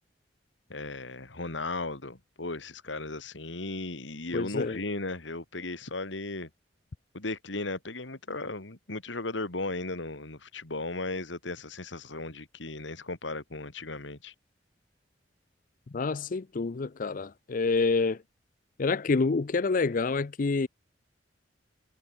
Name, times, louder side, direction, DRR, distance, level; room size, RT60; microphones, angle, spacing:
voice 1, 0.7-6.5 7.1-14.3, left 2 dB, 90° left, 2.5 m, -36 dB
voice 2, 4.3-4.8 15.9-18.2 18.8-20.7, left 4 dB, 45° left, 0.5 m, -27 dB
head